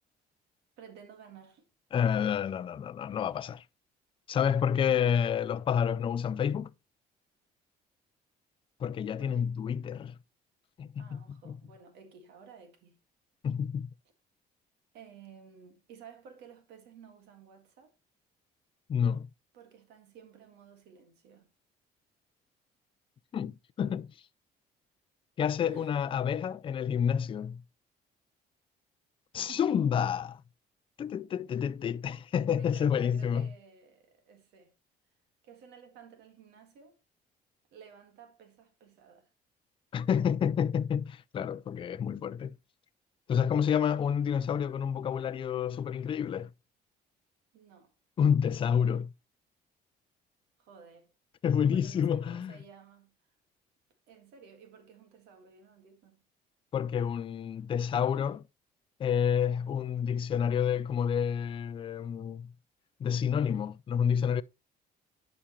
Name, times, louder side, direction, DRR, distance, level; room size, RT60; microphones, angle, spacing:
voice 1, 0.8-1.7 4.7-5.0 9.2-9.5 11.0-13.0 14.9-17.9 19.5-21.5 25.6-25.9 29.4-29.9 32.5-34.7 35.4-37.0 37.7-39.3 43.4-43.8 47.5-47.9 50.6-51.1 51.7-53.1 54.1-56.2, right 7 dB, 85° right, 1.8 m, -54 dB
voice 2, 1.9-3.6 4.3-6.7 8.8-10.1 10.8-11.2 11.5-11.6 13.4-13.9 18.9-19.3 23.3-24.1 25.4-27.6 29.3-30.4 31.0-33.5 39.9-42.5 43.3-46.5 48.2-49.1 51.4-52.5 56.7-58.4 59.0-62.5 63.0-64.4, left 8 dB, 30° left, 0.4 m, -29 dB
10.0 x 5.1 x 3.0 m
cardioid pair, 110°, 17 cm